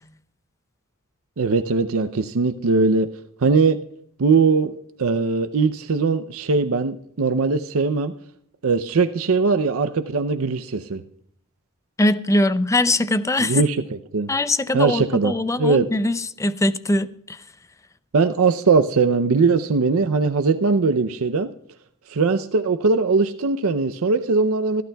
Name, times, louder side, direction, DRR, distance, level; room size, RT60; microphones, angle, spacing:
voice 1, 1.4-3.1 3.4-3.8 4.2-4.7 5.0-8.1 8.6-11.0 13.4-14.3 14.7-15.3 15.6-15.9 18.1-21.5 22.1-24.8, right 4 dB, 75° right, 0.6 m, -20 dB
voice 2, 12.0-13.6 14.3-17.4, left 1 dB, 15° left, 0.5 m, -22 dB
26.0 x 11.5 x 2.3 m
head